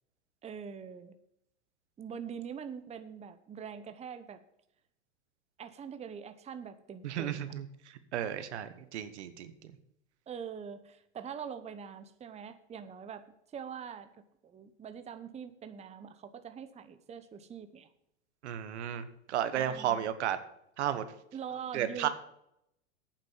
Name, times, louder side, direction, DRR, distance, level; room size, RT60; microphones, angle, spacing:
voice 1, 0.4-1.2 2.0-4.4 5.6-7.5 10.3-13.2 13.5-14.1 14.4-17.9 19.6-20.1 21.3-22.1, right 7 dB, 20° right, 10 dB, 0.9 m, -43 dB
voice 2, 7.0-9.8 18.4-20.4 20.8-21.0 21.7-22.1, right 10 dB, 75° right, 12 dB, 1.4 m, -34 dB
8.9 x 7.5 x 7.2 m, 0.78 s
hypercardioid pair, 105°, 34 cm